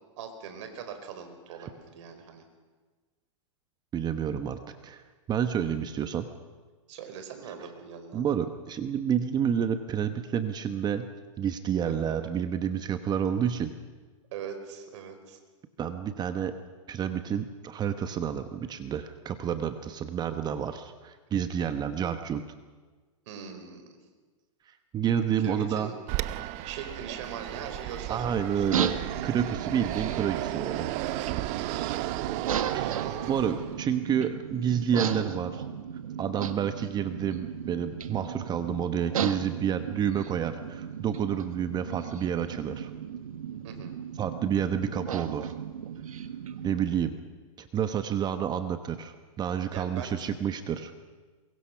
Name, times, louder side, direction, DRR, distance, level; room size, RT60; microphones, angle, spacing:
voice 1, 0.2-2.4 6.9-8.2 11.9-12.0 14.3-15.4 23.3-23.9 25.4-25.9 26.6-28.7 32.7-33.6 43.6-43.9 49.7-50.3, right 6 dB, 60° right, 7 dB, 4.4 m, -41 dB
voice 2, 3.9-5.0 5.3-6.3 8.1-11.1 11.4-13.7 15.8-16.6 16.9-22.4 24.9-25.9 28.1-30.9 31.7-32.0 32.7-32.9 33.3-35.6 36.2-42.9 44.2-45.5 46.6-47.1 47.6-50.9, right 8 dB, 25° right, 9 dB, 1.1 m, -29 dB
Fixed-wing aircraft airplane, 26.1-33.9, right 16 dB, 40° right, 0.8 m, -34 dB
sound 1, 28.7-46.8, right 8 dB, 85° right, 1.5 m, -36 dB
23.0 x 22.5 x 5.9 m, 1.4 s
hypercardioid pair, 125°, 17 cm